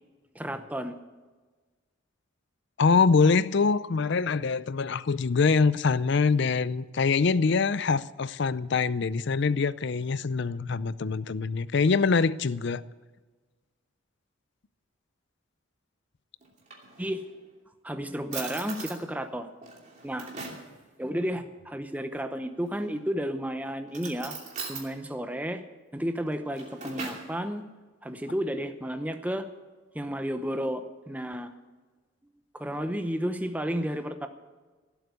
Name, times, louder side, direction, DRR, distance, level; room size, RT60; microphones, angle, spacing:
voice 1, 0.3-1.0 17.0-17.2 17.8-19.5 20.0-20.3 21.0-24.4 24.7-25.6 25.9-27.6 28.0-29.4 29.9-31.5 32.5-34.3, equal, 5° right, 0.8 m, -32 dB
voice 2, 2.8-12.8, left 4 dB, 55° left, 0.5 m, -24 dB
Drawer open or close, 16.4-17.4 17.9-18.0 18.3-19.0 19.6-20.7 22.6-23.1 23.9-24.9 26.3-27.3, right 4 dB, 35° right, 2.8 m, -40 dB
16.5 x 8.1 x 8.3 m
head